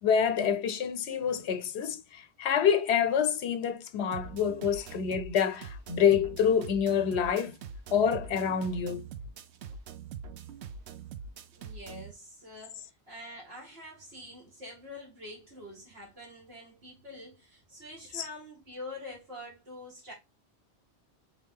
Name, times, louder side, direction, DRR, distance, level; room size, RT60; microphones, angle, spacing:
voice 1, 0.0-7.6 7.9-9.1 18.1-18.3, left 7 dB, 80° left, 0.9 m, -27 dB
sound 1, 4.1-12.1, right 6 dB, 80° right, 0.9 m, -43 dB
voice 2, 11.5-20.1, left 1 dB, 65° right, 2.0 m, -46 dB
4.1 x 3.5 x 3.5 m
omnidirectional pair, 1.1 m